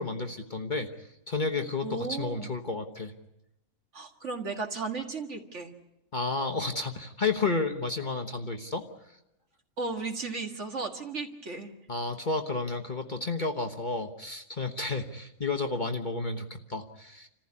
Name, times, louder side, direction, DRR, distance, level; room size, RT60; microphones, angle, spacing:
voice 1, 0.0-3.1 6.1-8.8 11.9-17.3, left 3 dB, 35° left, 3 dB, 1.2 m, -31 dB
voice 2, 1.8-2.5 3.9-5.7 9.8-11.7, right 3 dB, 50° right, 4 dB, 2.1 m, -35 dB
27.5 x 15.0 x 9.8 m, 0.91 s
omnidirectional pair, 1.5 m